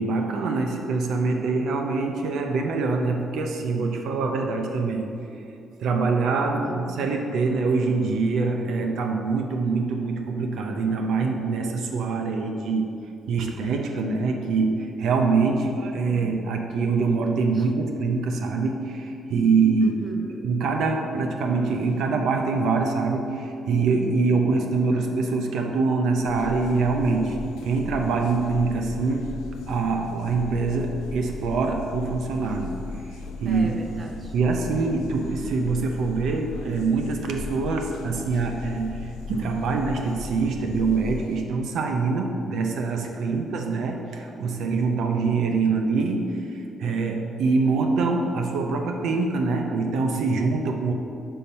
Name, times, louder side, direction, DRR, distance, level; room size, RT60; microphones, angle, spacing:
voice 1, 0.0-5.1 5.8-12.9 13.3-20.0 20.4-29.4 29.7-33.8 34.3-50.9, right 4 dB, 75° right, 3 dB, 0.5 m, -24 dB
voice 2, 6.6-7.1 17.5-17.6 19.8-20.5 33.5-34.3 42.9-43.5 45.7-45.8, right 2 dB, 35° right, 4 dB, 0.6 m, -39 dB
sound 1, 26.3-41.4, left 4 dB, 85° left, 0.4 m, -38 dB
5.6 x 5.4 x 4.2 m, 2.7 s
cardioid pair, 90°, 0 cm